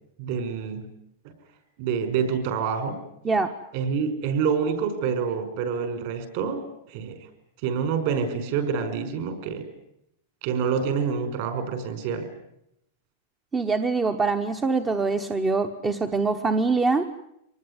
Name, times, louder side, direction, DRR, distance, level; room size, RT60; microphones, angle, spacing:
voice 1, 0.2-0.9 1.8-3.0 3.7-7.2 7.6-9.7 10.4-12.3, right 6 dB, 50° right, 9 dB, 5.4 m, -27 dB
voice 2, 13.5-17.1, right 4 dB, 15° right, 6 dB, 1.1 m, -24 dB
25.0 x 19.5 x 9.7 m, 0.79 s
supercardioid pair, 160°, 0 cm